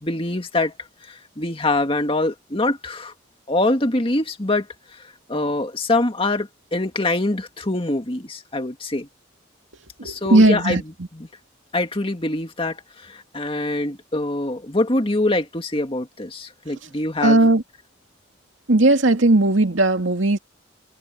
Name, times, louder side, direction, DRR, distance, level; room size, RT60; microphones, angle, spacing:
voice 1, 0.0-3.1 3.5-9.1 10.0-10.8 11.1-11.3 11.7-17.4, left 2 dB, 30° left, 2.0 m, -24 dB
voice 2, 10.0-10.8 17.2-17.6 18.7-20.4, right 2 dB, 75° right, 2.4 m, -16 dB
head